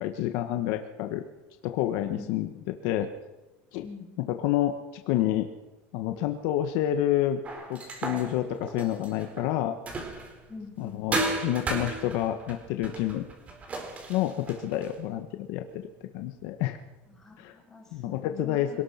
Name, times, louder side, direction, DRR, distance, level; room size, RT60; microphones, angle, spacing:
voice 1, 0.0-1.2 1.6-3.1 3.7-3.9 4.3-4.7 5.1-5.5 5.9-7.4 7.7-9.7 10.8-13.3 14.1-15.8 16.1-16.8 17.4-17.5 17.9-18.8, left 12 dB, 65° left, 6 dB, 1.6 m, -28 dB
voice 2, 3.8-4.3 10.5-11.1 17.1-18.8, left 4 dB, 5° left, -2 dB, 7.9 m, -44 dB
sound 1, 7.4-10.5 11.1-15.0, right 2 dB, 20° right, 4.2 m, -34 dB
25.5 x 19.0 x 6.0 m, 1.1 s
cardioid pair, 155°, 6 cm